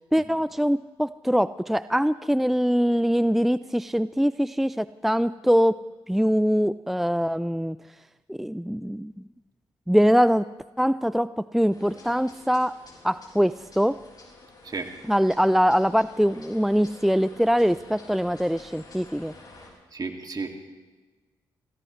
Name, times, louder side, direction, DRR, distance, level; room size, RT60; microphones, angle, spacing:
voice 1, 0.1-5.8 6.1-7.8 8.3-9.1 9.9-10.4 10.8-12.8 13.0-14.0 15.1-19.3, equal, ahead, 15 dB, 0.4 m, -23 dB
sound 1, 11.7-19.7, left 2 dB, 45° left, 5.7 m, -49 dB
voice 2, 19.9-20.6, right 4 dB, 45° right, 4 dB, 2.3 m, -32 dB
26.5 x 16.5 x 3.3 m, 1.3 s
supercardioid pair, 50°, 10 cm